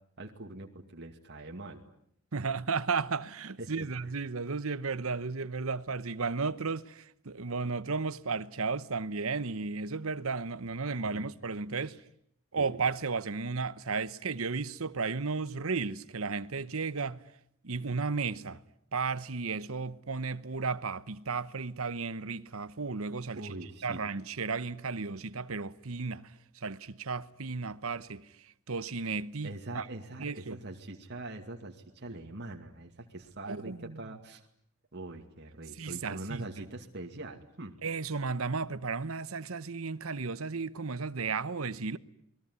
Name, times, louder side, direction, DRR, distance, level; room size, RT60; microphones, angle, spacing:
voice 1, 0.2-1.8 3.6-4.1 11.0-11.3 11.8-12.0 12.6-12.8 23.3-24.0 29.4-34.4 34.9-37.8, right 2 dB, 50° right, 2.4 m, -43 dB
voice 2, 2.3-12.0 12.5-17.2 17.6-18.6 18.9-23.5 23.8-29.9 30.2-30.6 33.5-34.0 35.8-36.5 37.8-42.0, right 4 dB, 70° right, 1.0 m, -34 dB
28.0 x 21.5 x 9.7 m
head